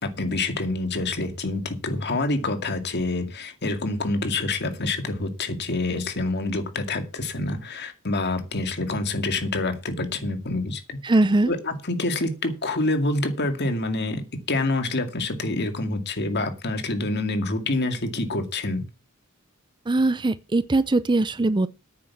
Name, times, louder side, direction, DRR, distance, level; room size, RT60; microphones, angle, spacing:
voice 1, 0.0-11.0 11.5-18.8, left 2 dB, 50° left, 2.2 m, -27 dB
voice 2, 11.0-11.5 19.9-21.7, right 2 dB, 20° right, 0.5 m, -21 dB
9.5 x 7.7 x 7.2 m
head